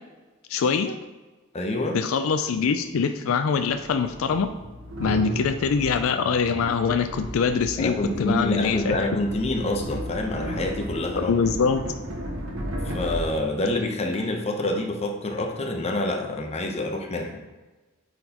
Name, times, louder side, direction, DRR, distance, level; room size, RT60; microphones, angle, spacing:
voice 1, 0.5-1.0 1.9-4.5 5.0-9.1 11.2-11.9, left 5 dB, 80° left, 8 dB, 0.4 m, -24 dB
voice 2, 1.5-2.0 5.0-5.2 7.8-11.3 12.8-17.3, left 1 dB, 30° left, 3 dB, 0.7 m, -27 dB
sound 1, 2.5-2.6 3.6-14.2, equal, 85° right, 1.3 m, -34 dB
9.0 x 4.0 x 2.9 m, 1.2 s
head